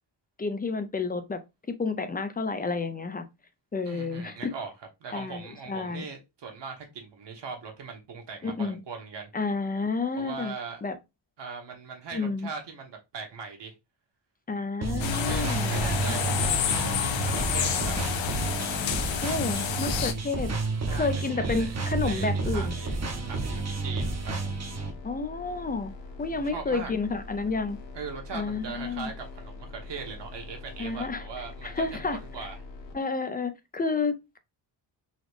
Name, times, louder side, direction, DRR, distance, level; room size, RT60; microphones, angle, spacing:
voice 1, 0.4-1.4 1.8-3.3 3.7-4.5 5.1-5.4 5.7-6.0 8.4-8.8 9.3-10.5 10.8-11.0 12.1-12.5 14.5-16.4 19.2-20.5 20.9-22.8 25.0-25.9 26.2-27.8 28.3-29.1 30.8-31.2 31.6-32.2 32.9-34.4, left 4 dB, 20° left, 0.4 m, -30 dB
voice 2, 3.8-4.7 5.0-9.3 10.2-10.8 11.4-13.7 14.9-16.9 17.2-18.0 20.9-21.7 22.0-23.0 23.2-24.5 26.3-26.9 27.9-32.6, right 5 dB, 65° right, 1.4 m, -40 dB
sound 1, 14.8-24.9, right 3 dB, 35° right, 0.8 m, -31 dB
sound 2, 15.0-20.1, left 8 dB, 85° left, 0.7 m, -29 dB
sound 3, 22.6-32.9, left 3 dB, 70° left, 1.0 m, -43 dB
4.0 x 2.9 x 3.2 m
wide cardioid pair, 150°, 45 cm